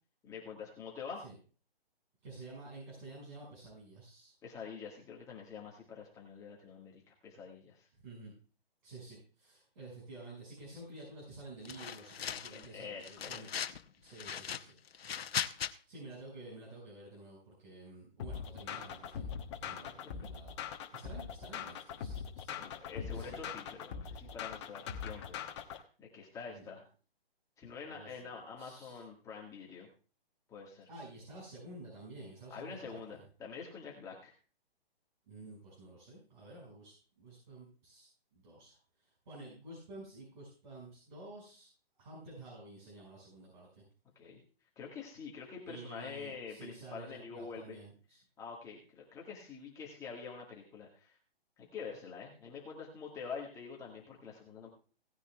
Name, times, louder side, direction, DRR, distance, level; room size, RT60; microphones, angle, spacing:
voice 1, 0.2-1.2 4.4-7.9 12.5-13.6 19.8-19.9 22.6-25.5 25.7-26.8 27.6-29.9 30.5-30.9 32.5-34.3 44.2-44.4 44.8-47.8 48.4-51.2 51.6-54.7, left 5 dB, 10° left, -3 dB, 1.8 m, -46 dB
voice 2, 2.2-4.3 8.0-8.3 8.8-13.5 14.0-15.2 15.5-19.2 19.6-23.5 26.5-26.7 27.9-29.0 30.9-33.2 35.3-41.7 42.0-43.8 45.6-48.2, right 2 dB, 50° right, -5 dB, 6.0 m, -51 dB
sound 1, 11.7-12.7 13.0-13.8 14.2-15.7, left 8 dB, 75° left, 0.9 m, -38 dB
sound 2, 18.2-25.8, left 7 dB, 30° left, 1.1 m, -42 dB
17.5 x 9.7 x 2.4 m, 0.37 s
hypercardioid pair, 155°, 30 cm